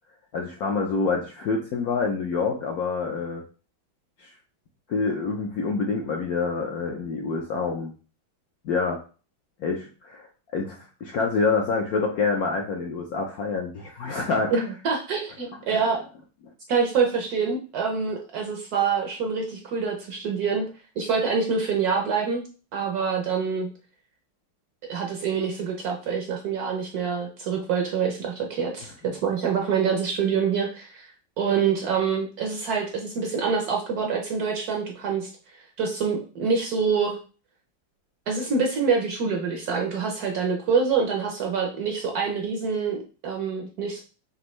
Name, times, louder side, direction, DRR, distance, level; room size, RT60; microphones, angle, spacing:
voice 1, 0.3-3.4 4.2-4.3 4.9-7.9 8.6-9.0 9.6-10.3 10.5-14.5 15.7-15.8, left 4 dB, 70° left, 1 dB, 0.8 m, -27 dB
voice 2, 14.5-16.0 16.7-20.6 21.0-22.4 22.7-23.7 24.9-31.1 31.4-35.3 35.8-37.2 38.3-44.0, right 5 dB, 65° right, 2 dB, 1.0 m, -26 dB
5.3 x 2.6 x 3.0 m, 0.37 s
omnidirectional pair, 2.2 m